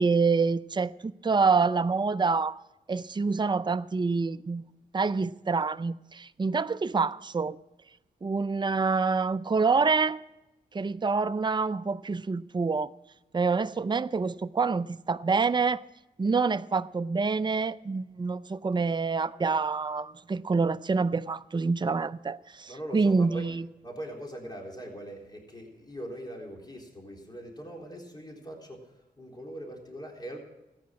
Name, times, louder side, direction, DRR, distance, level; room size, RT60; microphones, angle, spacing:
voice 1, 0.0-2.6 2.9-4.6 4.9-7.6 8.2-10.2 10.7-12.9 13.3-15.8 16.2-23.6, right 4 dB, 25° right, 0.5 m, -27 dB
voice 2, 22.7-23.5 23.8-30.4, right 1 dB, 25° left, 3.8 m, -41 dB
14.5 x 9.5 x 6.2 m
cardioid pair, 45°, 18 cm